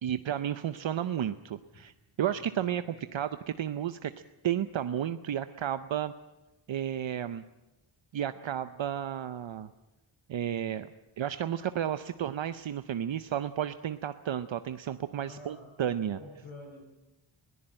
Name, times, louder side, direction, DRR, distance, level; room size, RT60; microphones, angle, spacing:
voice 1, 0.0-1.9 2.2-4.1 4.4-6.1 6.7-7.4 8.1-9.7 10.3-10.9 11.2-16.2, right 10 dB, 65° right, 11 dB, 0.7 m, -32 dB
voice 2, 2.3-3.1 15.2-15.7 16.1-16.8, left 2 dB, 75° left, -3 dB, 7.9 m, -49 dB
21.5 x 17.5 x 8.8 m, 1.0 s
wide cardioid pair, 180°, 49 cm